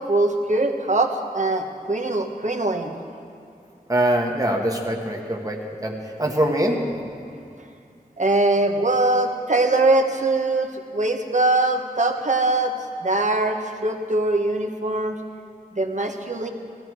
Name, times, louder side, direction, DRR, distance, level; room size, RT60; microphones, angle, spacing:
voice 1, 0.0-2.9 8.2-12.7 13.0-15.2 15.7-16.5, right 2 dB, 50° right, 4 dB, 1.2 m, -22 dB
voice 2, 3.9-6.8, right 1 dB, 25° right, 0 dB, 1.5 m, -23 dB
18.0 x 14.0 x 4.8 m, 2.5 s
wide cardioid pair, 55°, 16 cm